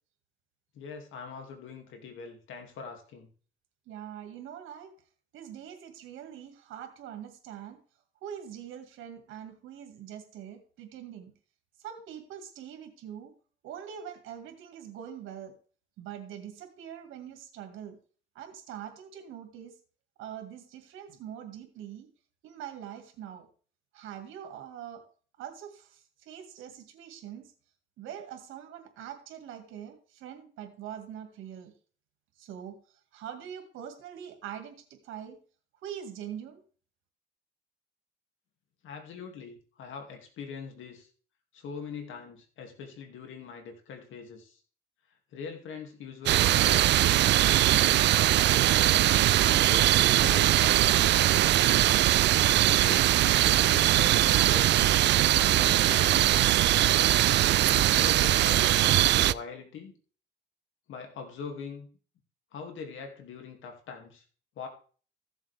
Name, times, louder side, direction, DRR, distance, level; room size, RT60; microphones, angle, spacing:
voice 1, 0.7-3.3 38.8-41.1 41.5-44.6 45.3-46.8 47.3-48.6 49.4-51.8 52.6-55.0 55.5-56.7 57.6-59.9 60.9-61.9 62.5-64.2 64.6-64.7, left 6 dB, 80° left, 4 dB, 2.5 m, -42 dB
voice 2, 3.9-4.9 5.3-7.8 8.2-11.3 11.8-13.3 13.6-15.5 16.0-18.0 18.4-19.8 20.2-22.1 22.4-23.5 23.9-25.0 25.4-27.5 28.0-31.7 32.4-32.8 33.1-35.4 35.8-36.6, right 9 dB, 90° right, 5 dB, 2.0 m, -43 dB
sound 1, 46.3-59.3, right 14 dB, 65° right, 0.4 m, -21 dB
15.0 x 7.4 x 3.5 m, 0.41 s
cardioid pair, 90°, 20 cm